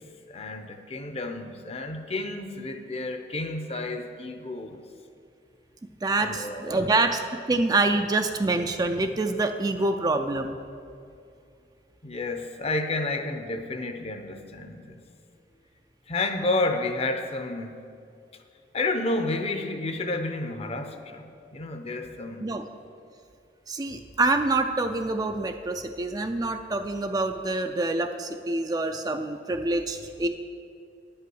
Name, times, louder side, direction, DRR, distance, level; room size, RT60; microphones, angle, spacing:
voice 1, 0.3-4.8 6.2-6.9 12.0-15.0 16.1-17.7 18.7-21.2 21.5-22.5, left 2 dB, 35° left, 7 dB, 0.7 m, -30 dB
voice 2, 6.0-7.2 7.5-10.6 22.4-22.6 23.7-30.3, right 2 dB, 20° right, 6 dB, 0.4 m, -26 dB
10.5 x 5.6 x 7.8 m, 2.5 s
head